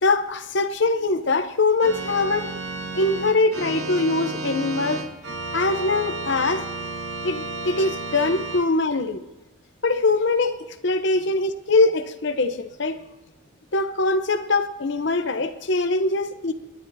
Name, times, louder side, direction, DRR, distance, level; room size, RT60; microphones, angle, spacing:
voice 1, 0.0-2.5 2.9-5.2 5.5-6.6 7.2-9.2 9.8-10.6 10.8-13.0 13.7-16.5, left 3 dB, 55° left, 0.8 m, -22 dB
Organ, 1.8-8.6, right 3 dB, 65° right, 1.5 m, -32 dB
28.5 x 9.7 x 2.7 m
head